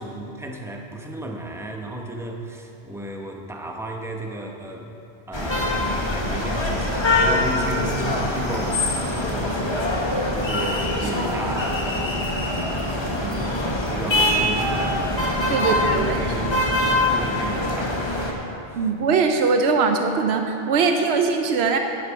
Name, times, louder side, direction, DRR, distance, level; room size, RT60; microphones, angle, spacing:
voice 1, 0.0-4.9 5.3-9.9 10.3-15.2 15.6-16.6 16.8-18.9, right 1 dB, 5° right, 1 dB, 0.7 m, -34 dB
sound 1, 5.3-18.3, left 1 dB, 25° left, 1.2 m, -23 dB
voice 2, 15.5-16.3 18.7-21.8, right 5 dB, 80° right, 5 dB, 0.9 m, -21 dB
10.5 x 10.5 x 4.6 m, 2.8 s
omnidirectional pair, 1.1 m